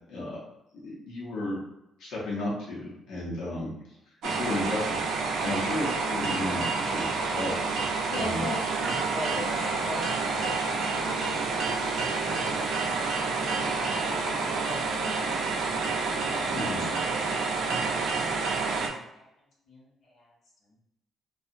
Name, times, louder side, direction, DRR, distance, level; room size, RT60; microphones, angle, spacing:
voice 1, 0.8-1.6 2.0-3.7 4.2-5.1 5.4-7.6 8.1-8.5 16.5-16.8, left 2 dB, 85° left, -5 dB, 0.9 m, -33 dB
sound 1, 4.2-18.9, right 4 dB, 80° right, 0.4 m, -29 dB
voice 2, 8.1-11.3 12.2-12.9 13.2-15.5 16.1-19.2 19.7-20.3, left 2 dB, 50° left, -6 dB, 0.9 m, -41 dB
2.8 x 2.4 x 2.5 m, 0.84 s
cardioid pair, 145°, 0 cm